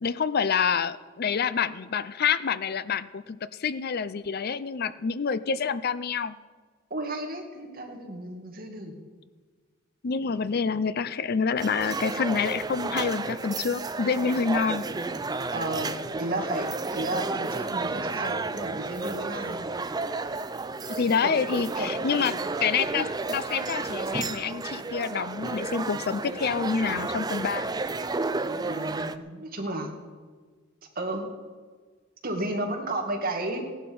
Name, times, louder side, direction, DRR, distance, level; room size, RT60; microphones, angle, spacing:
voice 1, 0.0-6.4 10.0-14.8 20.9-27.7, left 6 dB, 50° left, 15 dB, 0.5 m, -27 dB
voice 2, 6.9-9.0 15.5-15.9 16.2-19.6 21.2-21.4 21.8-21.9 28.7-29.9 31.0-31.3 32.2-33.6, right 1 dB, 50° right, 1 dB, 2.2 m, -33 dB
sound 1, 11.6-29.2, right 3 dB, 20° right, 0.5 m, -32 dB
17.0 x 11.0 x 5.4 m, 1.5 s
head